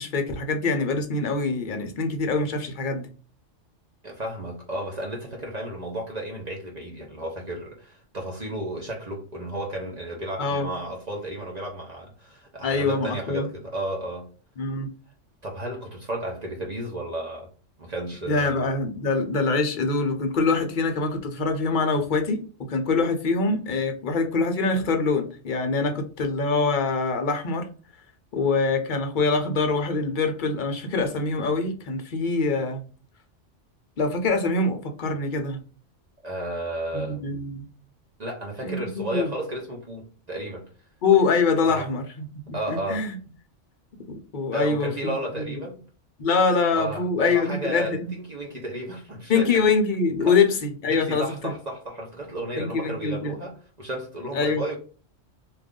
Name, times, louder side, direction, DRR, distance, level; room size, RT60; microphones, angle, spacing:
voice 1, 0.0-3.1 10.4-10.7 12.6-13.5 14.6-14.9 18.3-22.4 22.7-27.7 28.3-32.8 34.0-35.6 36.9-37.7 38.6-39.3 41.0-43.2 44.1-45.6 46.2-48.1 49.3-51.5 52.6-53.3 54.3-54.6, left 4 dB, 50° left, 0.7 m, -24 dB
voice 2, 4.0-14.3 15.4-17.5 17.8-18.6 36.2-37.2 38.2-40.7 41.6-41.9 42.5-43.1 44.5-45.8 46.5-49.6 50.2-50.4 50.9-54.8, right 1 dB, 40° right, 0.7 m, -33 dB
2.5 x 2.4 x 3.5 m
omnidirectional pair, 1.2 m